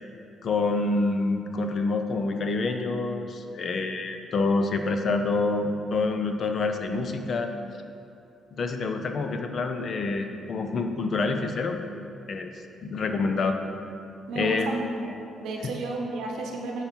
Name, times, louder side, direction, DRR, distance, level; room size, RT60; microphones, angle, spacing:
voice 1, 0.4-7.5 8.5-11.8 12.3-12.5 12.8-13.6 14.3-14.7 15.6-15.7, left 3 dB, 50° left, 5 dB, 0.6 m, -27 dB
voice 2, 14.3-16.8, right 2 dB, 80° right, 1 dB, 0.8 m, -32 dB
9.7 x 4.0 x 4.5 m, 2.6 s
cardioid pair, 90°, 0 cm